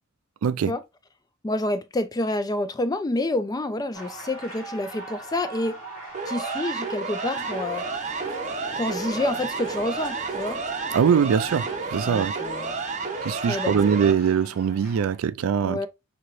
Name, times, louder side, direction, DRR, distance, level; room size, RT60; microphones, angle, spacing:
voice 1, 0.4-0.7 10.9-12.3 13.2-15.8, right 7 dB, 85° right, 0.3 m, -22 dB
voice 2, 1.4-5.8 6.3-7.8 8.8-10.6 12.1-12.8 13.5-13.9 15.6-15.9, left 1 dB, 20° left, 0.4 m, -28 dB
sound 1, 3.9-15.2, right 2 dB, 80° left, 1.6 m, -42 dB
Siren, 6.1-14.1, right 4 dB, 35° right, 0.6 m, -31 dB
sound 2, 7.3-14.8, left 1 dB, 40° left, 2.7 m, -44 dB
5.1 x 2.8 x 3.1 m
head